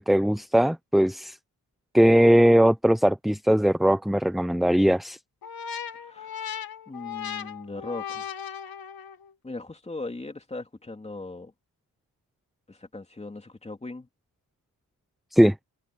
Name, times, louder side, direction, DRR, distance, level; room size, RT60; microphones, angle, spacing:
voice 1, 0.0-1.4 1.9-5.2 15.3-15.5, equal, ahead, 0.7 m, -20 dB
sound 1, 5.4-9.3, left 8 dB, 65° left, 2.2 m, -37 dB
voice 2, 5.9-6.5 6.9-8.3 9.4-11.5 12.7-14.1, left 2 dB, 15° left, 3.1 m, -39 dB
wide cardioid pair, 125°, 38 cm